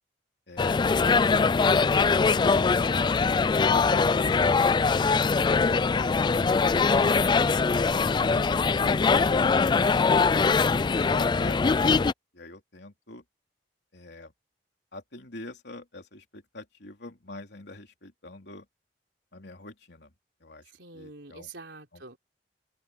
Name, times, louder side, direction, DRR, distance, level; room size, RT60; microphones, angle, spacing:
voice 1, 0.5-3.2 3.5-7.1 8.2-10.4 11.1-11.6 11.8-13.2 13.9-14.3 14.9-18.7 19.3-20.1 20.4-21.5 21.9-22.0, left 2 dB, 70° left, 3.5 m, -43 dB
sound 1, 0.6-12.1, left 4 dB, 25° left, 0.3 m, -22 dB
voice 2, 20.7-22.2, right 3 dB, 80° right, 4.0 m, -46 dB
open air
head